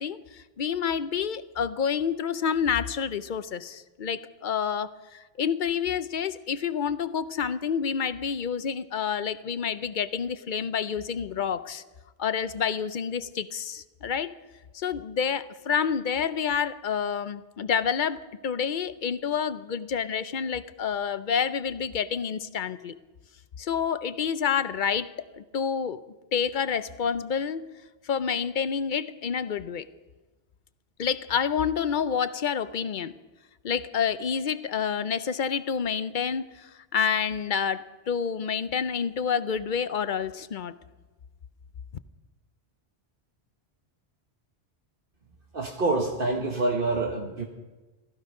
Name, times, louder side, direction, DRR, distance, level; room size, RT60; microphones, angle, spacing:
voice 1, 0.0-11.8 12.2-14.3 14.7-22.9 23.6-26.0 26.3-27.7 28.0-29.9 31.0-33.1 33.6-40.7, left 7 dB, 55° left, 14 dB, 0.7 m, -28 dB
voice 2, 45.5-47.4, right 2 dB, 55° right, 1 dB, 1.5 m, -26 dB
16.0 x 15.0 x 5.4 m, 1.2 s
omnidirectional pair, 1.1 m